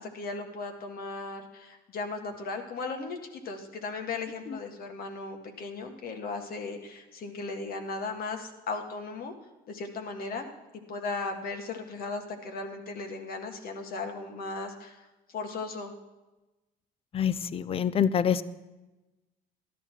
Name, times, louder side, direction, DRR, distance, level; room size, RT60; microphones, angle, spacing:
voice 1, 0.0-9.3 9.7-10.5 10.9-15.9, left 3 dB, 60° left, 5 dB, 1.7 m, -37 dB
voice 2, 17.1-18.4, left 8 dB, 35° left, 16 dB, 0.5 m, -26 dB
13.5 x 12.0 x 4.5 m, 1.1 s
cardioid pair, 110°, 17 cm